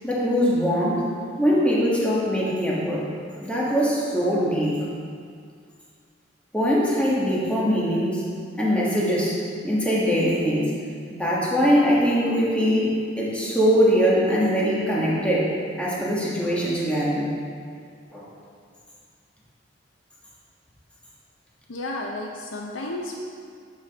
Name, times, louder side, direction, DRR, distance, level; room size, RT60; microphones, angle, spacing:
voice 1, 0.0-1.0 1.4-3.0 3.4-4.8 6.5-8.2 8.5-9.4 9.6-10.7 11.1-17.3 18.1-18.3, equal, 5° left, -6 dB, 1.3 m, -22 dB
voice 2, 21.7-23.2, left 2 dB, 90° left, 0 dB, 0.6 m, -32 dB
8.1 x 5.8 x 4.0 m, 2.2 s
head